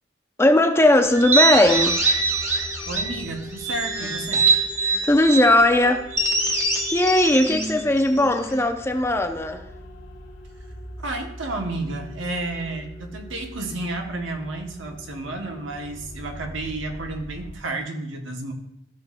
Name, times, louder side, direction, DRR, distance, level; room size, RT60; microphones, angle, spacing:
voice 1, 0.4-2.0 4.8-6.1 6.9-9.6, left 1 dB, 15° left, 6 dB, 0.6 m, -18 dB
sound 1, 1.0-17.5, left 1 dB, 90° left, 1.6 m, -42 dB
sound 2, 1.1-3.2 3.6-5.5 6.1-8.6, right 3 dB, 15° right, 1.4 m, -23 dB
voice 2, 2.9-4.5 11.0-18.5, right 2 dB, 85° right, 3 dB, 1.3 m, -31 dB
15.0 x 6.4 x 2.5 m, 0.81 s
head